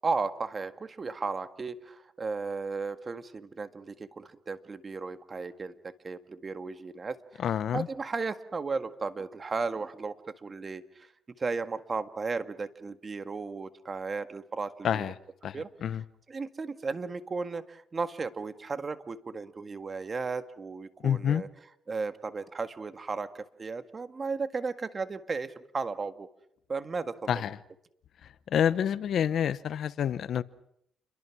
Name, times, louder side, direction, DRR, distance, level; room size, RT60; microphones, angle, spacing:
voice 1, 0.0-7.4 7.7-11.1 11.4-15.1 15.5-15.7 16.3-21.5 21.9-26.3 26.7-27.5, right 4 dB, 35° right, 10 dB, 1.8 m, -35 dB
voice 2, 7.4-7.9 14.8-15.1 15.4-15.6 15.8-16.0 21.0-21.4 27.3-27.6 28.5-30.4, left 9 dB, 65° left, 16 dB, 0.9 m, -27 dB
29.5 x 23.0 x 6.2 m, 0.73 s
cardioid pair, 90°, 0 cm